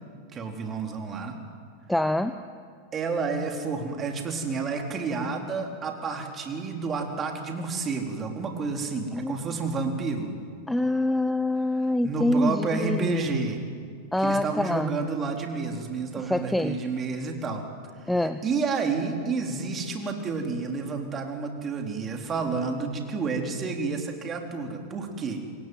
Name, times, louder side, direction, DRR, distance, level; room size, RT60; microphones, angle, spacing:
voice 1, 0.3-1.4 2.9-10.3 12.0-13.6 14.2-17.6 18.0-18.1 18.4-25.4, right 4 dB, 25° right, 3 dB, 4.0 m, -30 dB
voice 2, 1.9-2.4 9.1-9.4 10.7-13.2 14.1-14.9 16.1-16.8 18.1-18.4, left 1 dB, 5° left, 11 dB, 0.8 m, -25 dB
27.0 x 23.0 x 9.4 m, 2.1 s
figure-of-eight pair, 90°, 0 cm